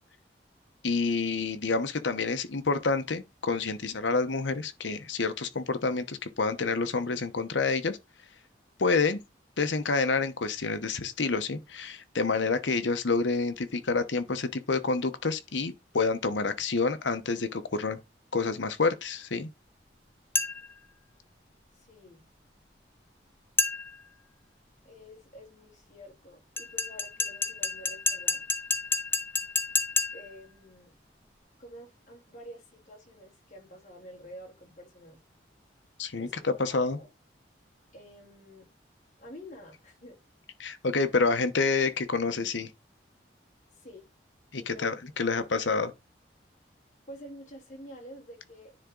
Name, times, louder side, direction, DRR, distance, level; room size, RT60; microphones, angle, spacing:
voice 1, 0.8-8.0 8.8-9.2 9.6-18.0 18.3-19.5 36.0-37.0 40.6-42.7 44.5-45.9, left 4 dB, 85° left, 0.9 m, -28 dB
sound 1, 20.3-20.8 23.6-24.1 26.6-30.4, left 4 dB, 10° left, 0.5 m, -30 dB
voice 2, 21.7-22.2 24.8-28.4 30.1-31.0 31.6-35.2 36.2-37.1 37.9-38.7 39.2-40.2 43.7-44.0 44.6-45.0 47.1-48.8, equal, 40° left, 3.0 m, -49 dB
9.9 x 3.6 x 3.8 m
head